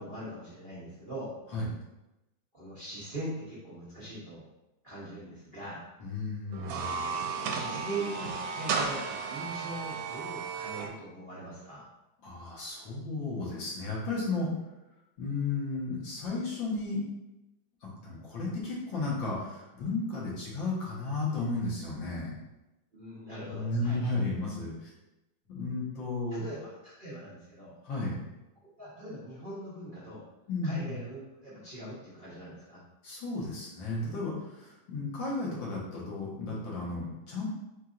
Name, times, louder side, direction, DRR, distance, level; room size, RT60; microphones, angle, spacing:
voice 1, 0.0-1.3 2.5-4.5 4.8-5.8 7.4-11.9 22.9-24.0 26.3-27.7 28.8-30.2 30.6-32.8, right 1 dB, 35° right, -10 dB, 0.8 m, -41 dB
voice 2, 6.0-7.1 12.2-14.5 15.2-17.0 17.8-22.3 23.5-24.9 25.5-26.5 27.8-28.2 30.5-31.0 33.0-37.5, left 3 dB, 70° left, -5 dB, 1.9 m, -34 dB
sound 1, 6.5-10.9, right 5 dB, 80° right, 1.3 m, -34 dB
4.5 x 4.0 x 2.5 m, 0.97 s
omnidirectional pair, 2.2 m